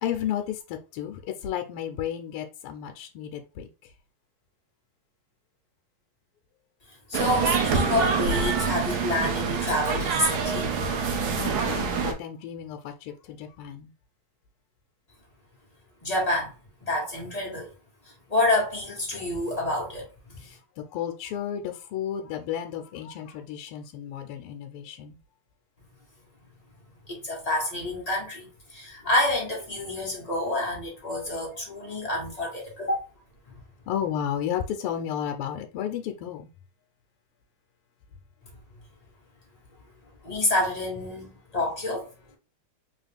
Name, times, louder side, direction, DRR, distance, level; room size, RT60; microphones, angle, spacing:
voice 1, 0.0-3.7 11.4-13.9 20.4-20.6 20.9-25.2 33.9-36.5, left 9 dB, 85° left, 1.5 m, -33 dB
voice 2, 7.1-10.7 16.0-16.5 16.8-17.7 18.3-20.4 27.1-33.0 40.2-42.1, left 1 dB, 25° left, 1.1 m, -28 dB
sound 1, 7.1-12.1, right 5 dB, 75° right, 0.9 m, -26 dB
3.8 x 2.4 x 3.3 m
omnidirectional pair, 2.4 m